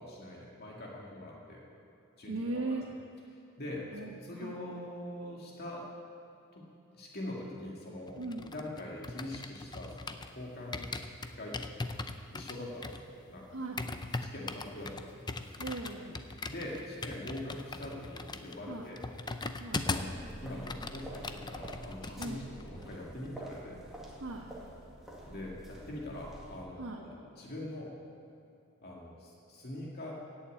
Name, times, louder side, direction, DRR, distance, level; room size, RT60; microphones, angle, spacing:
voice 1, 0.0-1.6 2.2-2.8 3.6-5.9 6.5-6.6 6.9-10.0 10.3-11.0 11.4-11.6 12.3-13.0 13.3-13.5 14.2-15.6 16.5-19.0 19.9-20.1 20.4-23.8 25.3-28.0 28.8-30.1, left 1 dB, 50° left, -3 dB, 2.3 m, -43 dB
voice 2, 2.2-2.9 3.9-4.6 8.2-8.5 13.5-14.1 15.6-16.3 18.7-18.9 19.6-19.9 22.2-22.5 24.2-24.5 26.8-27.0, right 2 dB, 75° right, -2 dB, 1.4 m, -39 dB
sound 1, 8.1-10.4 10.7-20.2 20.5-22.3 22.6-22.9, left 3 dB, 20° left, 0.6 m, -40 dB
sound 2, 19.6-26.6, right 1 dB, ahead, 2.2 m, -48 dB
17.0 x 7.2 x 8.5 m, 2.7 s
head